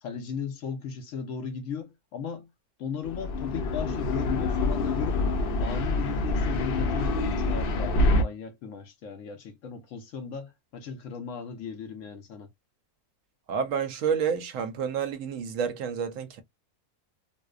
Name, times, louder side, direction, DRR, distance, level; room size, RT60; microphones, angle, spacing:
voice 1, 0.0-2.5 2.8-5.2 5.6-12.5, left 6 dB, 65° left, 0.9 m, -36 dB
sound 1, 3.0-8.2, left 2 dB, 80° left, 0.5 m, -26 dB
voice 2, 13.5-16.4, right 7 dB, 65° right, 0.9 m, -29 dB
2.7 x 2.0 x 2.3 m
omnidirectional pair, 1.6 m